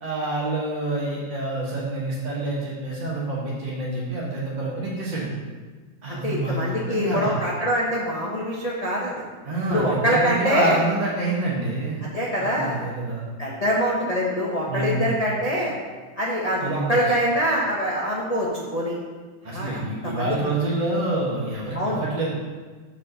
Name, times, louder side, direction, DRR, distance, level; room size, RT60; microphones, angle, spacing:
voice 1, 0.0-5.3 6.0-7.4 9.4-12.1 12.4-13.2 14.7-15.1 16.6-17.0 19.4-22.3, right 2 dB, 25° right, -6 dB, 1.2 m, -27 dB
voice 2, 6.1-9.1 9.7-10.8 12.0-12.8 13.4-15.7 16.2-18.9 19.5-19.7 20.0-20.4 21.7-22.0, equal, 30° left, -5 dB, 0.7 m, -24 dB
5.8 x 5.0 x 6.6 m, 1.4 s
omnidirectional pair, 2.0 m